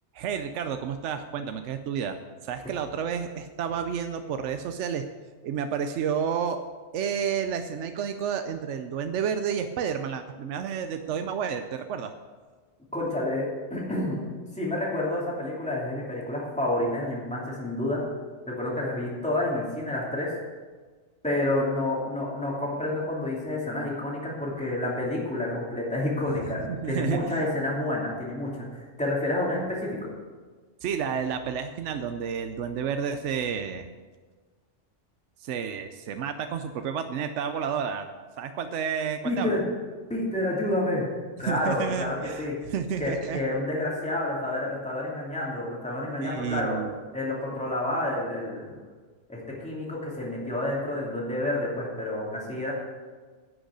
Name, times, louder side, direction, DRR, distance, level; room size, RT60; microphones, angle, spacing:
voice 1, 0.1-5.1 5.4-6.6 6.9-12.1 26.7-27.2 30.8-33.9 35.4-38.1 38.4-39.6 41.4-43.4 46.2-46.9, right 7 dB, 80° right, 8 dB, 1.0 m, -30 dB
voice 2, 12.9-14.2 14.5-18.0 18.4-20.3 21.2-30.1 39.2-39.7 40.1-41.1 41.4-42.6 43.0-46.8 47.1-48.7 49.3-52.7, left 1 dB, 5° left, -5 dB, 2.7 m, -29 dB
11.0 x 6.4 x 8.1 m, 1.4 s
omnidirectional pair, 1.2 m